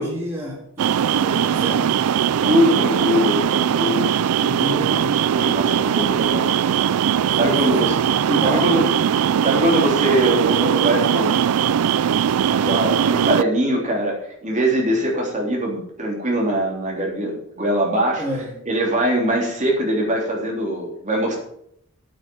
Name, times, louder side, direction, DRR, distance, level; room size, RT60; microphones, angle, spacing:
voice 1, 0.0-1.9 4.4-5.2 7.2-7.9 8.2-8.8 18.2-18.6, equal, 10° right, -4 dB, 2.1 m, -30 dB
sound 1, 0.8-13.4, right 8 dB, 85° right, 0.4 m, -20 dB
voice 2, 2.4-4.1 5.3-6.5 7.4-7.9 8.4-8.9 9.2-11.4 12.5-18.2 18.7-21.4, right 1 dB, 35° right, -1 dB, 3.4 m, -22 dB
8.7 x 7.2 x 7.7 m, 0.71 s
head